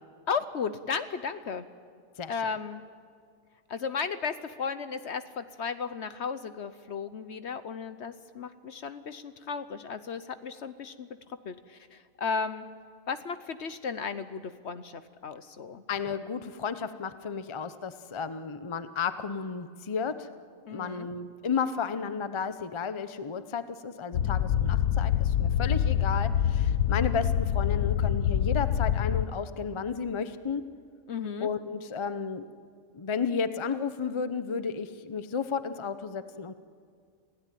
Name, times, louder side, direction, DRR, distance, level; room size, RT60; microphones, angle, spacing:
voice 1, 0.3-1.7 2.3-2.8 3.7-11.1 11.5-12.7 13.1-15.8 20.7-21.1 31.1-31.5, left 5 dB, 55° left, 12 dB, 1.0 m, -35 dB
voice 2, 15.9-20.1 20.7-30.6 31.4-32.5 32.9-36.5, left 6 dB, 25° left, 11 dB, 0.7 m, -33 dB
sound 1, 24.1-29.3, left 10 dB, 85° left, 1.2 m, -26 dB
27.5 x 16.5 x 9.3 m, 2.1 s
omnidirectional pair, 1.5 m